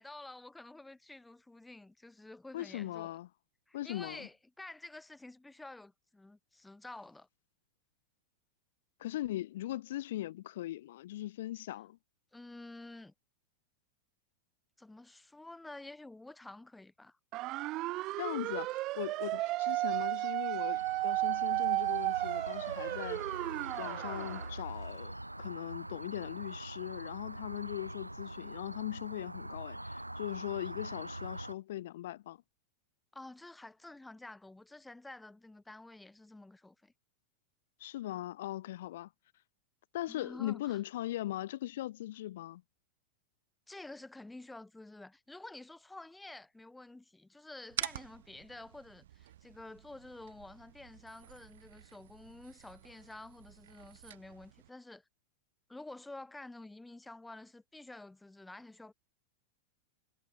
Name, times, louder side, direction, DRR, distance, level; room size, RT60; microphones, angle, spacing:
voice 1, 0.0-3.1 3.7-7.3 12.3-13.1 14.8-17.2 33.1-36.9 40.1-40.8 43.7-55.0 55.7-58.9, left 2 dB, 5° left, 7.0 m, -50 dB
voice 2, 2.5-3.3 3.7-4.3 9.0-12.0 18.2-23.2 23.8-32.4 37.8-39.1 39.9-42.6, left 14 dB, 55° left, 4.2 m, -39 dB
sound 1, 17.3-24.5, right 18 dB, 40° right, 0.8 m, -34 dB
sound 2, 20.7-31.5, right 1 dB, 85° right, 4.0 m, -44 dB
sound 3, 47.7-54.7, right 12 dB, 60° right, 3.8 m, -47 dB
figure-of-eight pair, 90°, 0 cm